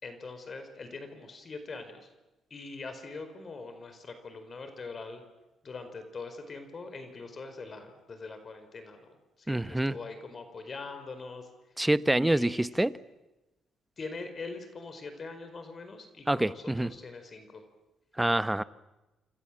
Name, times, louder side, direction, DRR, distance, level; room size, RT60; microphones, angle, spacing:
voice 1, 0.0-2.1 2.5-5.2 5.6-9.1 9.4-11.5 12.2-12.7 14.0-17.6, left 3 dB, 40° left, 4.7 m, -43 dB
voice 2, 9.5-10.0 11.8-12.9 16.3-16.9 18.2-18.6, right 1 dB, 10° right, 1.0 m, -26 dB
28.0 x 27.5 x 7.6 m
cardioid pair, 90°, 0 cm